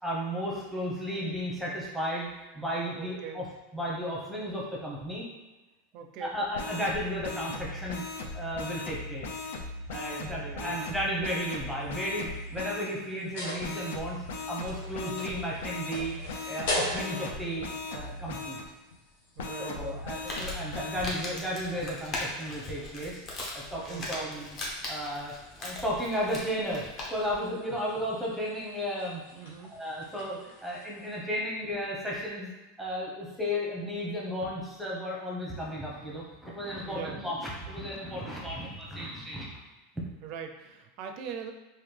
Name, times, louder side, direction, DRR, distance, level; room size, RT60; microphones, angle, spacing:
voice 1, 0.0-2.3 2.5-3.4 3.7-5.2 6.2-8.0 8.3-9.5 9.9-14.2 14.5-16.1 16.5-17.6 17.9-18.6 19.6-23.2 23.5-24.5 24.9-25.3 25.6-26.8 27.1-29.2 29.7-32.5 32.8-39.6 39.9-40.0, equal, ahead, -4 dB, 0.8 m, -34 dB
voice 2, 3.0-3.4 5.9-6.4 10.0-10.7 19.4-20.0 23.9-24.3 27.7-27.8 29.4-29.7 36.8-37.2 38.3-38.4 40.2-41.5, right 7 dB, 45° right, 5 dB, 0.4 m, -42 dB
sound 1, 6.5-12.9 13.6-18.6 19.4-21.0, left 3 dB, 90° left, 0.5 m, -38 dB
sound 2, 11.8-31.2, left 1 dB, 70° left, 1.0 m, -43 dB
Crumpling crinkling, 20.0-27.4, left 1 dB, 30° left, 0.8 m, -39 dB
3.9 x 2.5 x 3.3 m, 1.2 s
supercardioid pair, 160°, 0 cm